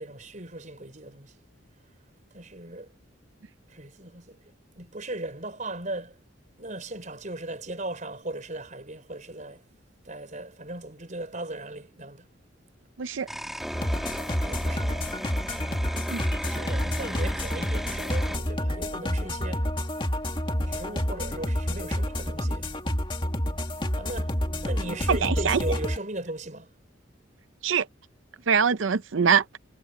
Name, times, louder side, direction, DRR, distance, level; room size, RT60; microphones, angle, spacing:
voice 1, 0.0-1.4 2.3-2.9 3.7-4.4 4.8-6.2 6.6-9.6 10.0-12.3 14.4-15.1 16.2-19.7 20.6-22.7 23.9-24.4 24.6-26.7, right 2 dB, 40° right, 5.1 m, -37 dB
sound 1, 13.3-18.4, equal, ahead, 2.0 m, -35 dB
sound 2, 13.7-26.0, left 1 dB, 25° left, 2.0 m, -29 dB
voice 2, 25.1-25.6 27.6-27.9 28.5-29.6, right 6 dB, 75° right, 0.6 m, -23 dB
head